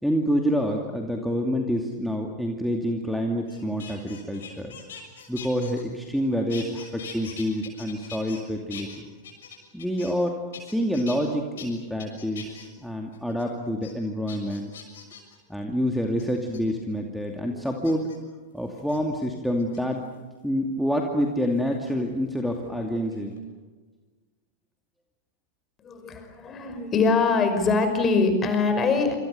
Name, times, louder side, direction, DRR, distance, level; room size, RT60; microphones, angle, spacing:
voice 1, 0.0-4.8 5.3-9.1 9.7-14.7 15.5-18.1 18.5-20.0 20.4-23.3, equal, ahead, 1 dB, 2.5 m, -27 dB
sound 1, 3.5-6.2 6.5-8.4 8.7-10.2 10.5-11.2 11.6-11.7 12.0-12.7 13.1-13.4 13.8-13.9 14.3-15.3 16.2-16.6 17.8-18.2 18.8-19.0 19.6-20.1 21.6-22.8 23.0-23.4, left 6 dB, 60° left, 6.7 m, -43 dB
voice 2, 25.8-29.1, left 4 dB, 25° left, 8 dB, 5.5 m, -23 dB
27.5 x 27.0 x 6.8 m, 1.3 s
figure-of-eight pair, 90°, 0 cm